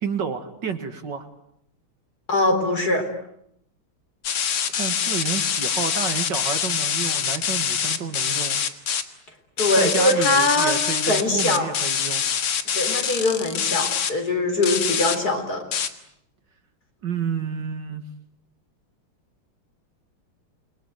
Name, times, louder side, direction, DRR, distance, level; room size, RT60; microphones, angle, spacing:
voice 1, 0.0-1.3 4.7-8.6 9.8-12.2 17.0-18.0, right 6 dB, 55° right, 8 dB, 2.4 m, -30 dB
voice 2, 2.3-3.1 9.6-11.7 12.7-15.6, left 2 dB, 45° left, 5 dB, 4.5 m, -22 dB
sound 1, 4.2-9.0 9.6-14.1 14.6-15.2 15.7-15.9, left 7 dB, 90° left, 2.6 m, -25 dB
29.0 x 22.5 x 9.1 m, 0.75 s
omnidirectional pair, 2.4 m